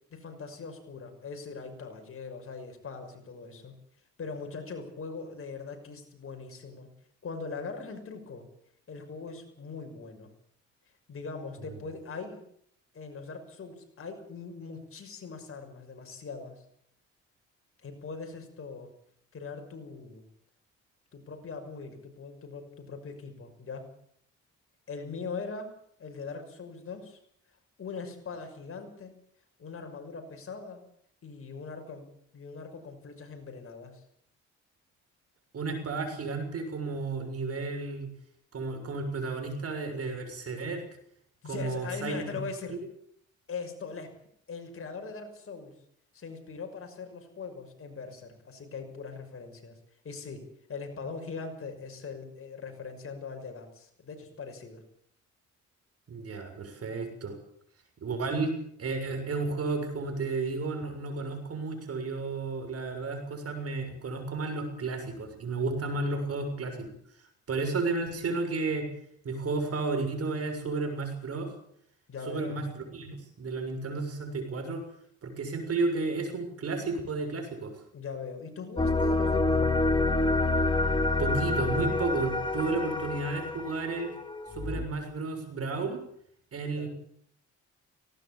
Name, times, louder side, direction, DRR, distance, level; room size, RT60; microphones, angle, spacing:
voice 1, 0.1-3.7 4.2-6.9 7.2-8.5 8.9-10.3 11.1-12.4 12.9-16.6 17.8-18.9 19.3-20.2 21.1-23.9 24.9-27.2 27.8-29.2 29.6-30.8 31.2-32.1 32.3-34.0 41.4-42.8 43.5-44.2 44.5-45.7 46.1-49.8 50.0-54.8 72.1-72.6 77.9-79.6 86.8-86.9, left 4 dB, 45° left, 5 dB, 6.2 m, -41 dB
voice 2, 35.5-38.1 38.5-40.8 41.4-42.4 42.7-42.8 56.1-57.4 58.0-66.9 67.5-68.9 69.2-71.5 72.3-74.8 75.2-77.7 81.2-84.1 84.5-86.0 86.5-86.9, right 3 dB, 50° right, 7 dB, 6.8 m, -32 dB
sound 1, 78.8-84.8, left 2 dB, 15° left, 2.7 m, -27 dB
18.5 x 18.5 x 8.6 m, 0.67 s
cardioid pair, 90°, 30 cm